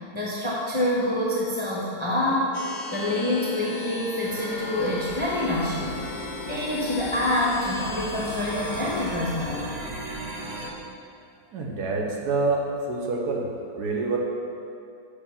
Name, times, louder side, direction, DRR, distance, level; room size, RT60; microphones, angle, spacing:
voice 1, 0.1-2.6 2.9-9.6, left 1 dB, 25° left, -6 dB, 0.7 m, -26 dB
sound 1, 2.5-9.2, left 3 dB, 60° left, 0.7 m, -37 dB
sound 2, 4.2-10.7, right 2 dB, 45° right, 1.0 m, -38 dB
voice 2, 11.5-13.5 13.7-14.2, right 3 dB, 65° right, -1 dB, 1.3 m, -26 dB
6.9 x 5.1 x 5.7 m, 2.6 s
omnidirectional pair, 1.9 m